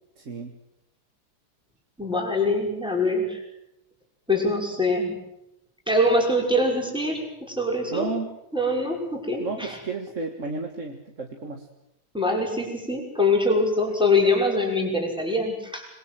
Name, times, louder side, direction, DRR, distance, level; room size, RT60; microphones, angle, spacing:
voice 1, 0.2-0.5 7.9-8.4 9.4-11.7, right 3 dB, 35° right, 3 dB, 2.1 m, -32 dB
voice 2, 2.0-3.4 4.3-5.2 5.9-7.2 7.5-8.1 8.5-9.8 12.1-15.9, left 2 dB, ahead, 0 dB, 5.7 m, -23 dB
26.5 x 22.0 x 7.7 m, 0.86 s
omnidirectional pair, 2.4 m